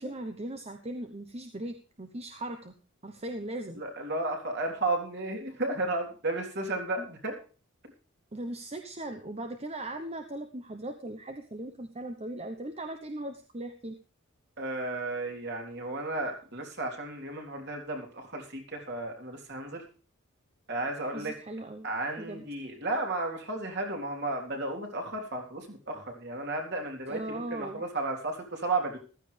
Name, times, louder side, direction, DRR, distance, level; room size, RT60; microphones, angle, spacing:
voice 1, 0.0-2.7 3.0-3.8 7.0-7.1 8.3-14.0 21.1-21.9 22.2-22.4 27.1-27.8, right 1 dB, 30° right, 6 dB, 1.0 m, -38 dB
voice 2, 3.8-7.3 14.6-19.8 20.7-21.3 21.8-29.0, right 2 dB, 50° right, 2 dB, 3.6 m, -33 dB
15.0 x 13.5 x 3.4 m, 0.36 s
head